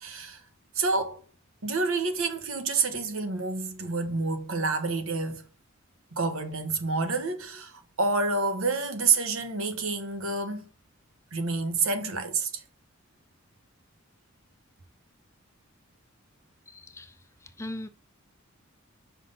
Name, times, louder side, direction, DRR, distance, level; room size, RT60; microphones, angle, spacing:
voice 1, 0.0-0.4 0.7-1.2 1.6-5.4 6.1-10.7 11.3-12.6, right 4 dB, 75° right, 1.2 m, -28 dB
voice 2, 16.7-17.9, left 1 dB, 15° left, 0.5 m, -40 dB
5.9 x 5.6 x 3.9 m
head